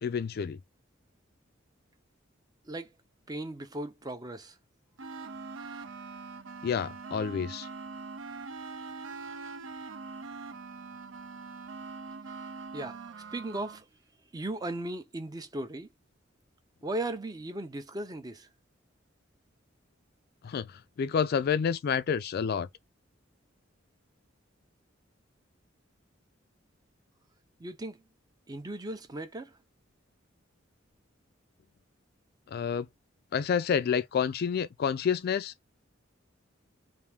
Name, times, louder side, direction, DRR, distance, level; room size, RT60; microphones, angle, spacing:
voice 1, 0.0-0.6 6.6-7.7 20.4-22.7 32.5-32.9 33.3-35.7, left 7 dB, 55° left, 0.3 m, -29 dB
voice 2, 3.3-4.6 12.7-13.0 13.3-13.9 14.3-15.9 16.8-18.5 27.6-28.0 28.5-29.6, right 1 dB, 20° right, 0.5 m, -37 dB
sound 1, 5.0-13.8, right 4 dB, 80° right, 0.6 m, -43 dB
3.4 x 2.6 x 3.4 m
head